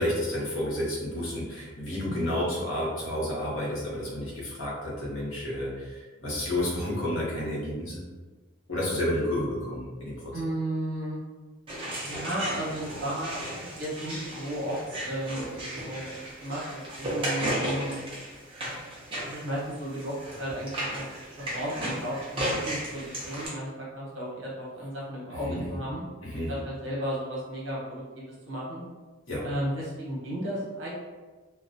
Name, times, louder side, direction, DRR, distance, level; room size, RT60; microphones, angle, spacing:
voice 1, 0.0-8.0 8.7-10.3 25.4-25.7 26.2-26.5 29.3-29.4, left 1 dB, 90° left, -5 dB, 0.9 m, -30 dB
voice 2, 10.3-11.2 12.0-18.0 19.2-21.0 21.4-26.0 26.5-28.8 29.4-30.9, right 1 dB, 75° right, -6 dB, 0.9 m, -34 dB
sound 1, 11.7-23.5, right 1 dB, 25° right, 0.6 m, -35 dB
2.4 x 2.1 x 2.6 m, 1.3 s
head